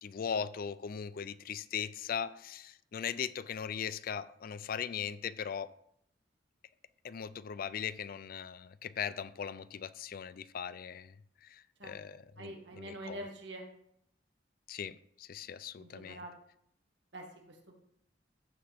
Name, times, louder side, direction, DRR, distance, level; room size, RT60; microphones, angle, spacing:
voice 1, 0.0-5.7 7.0-11.1 11.4-13.2 14.7-16.2, left 7 dB, 55° left, 0.4 m, -39 dB
voice 2, 12.4-13.7 15.8-16.4 17.1-17.7, right 1 dB, 80° right, 1.9 m, -45 dB
14.5 x 5.1 x 3.5 m
head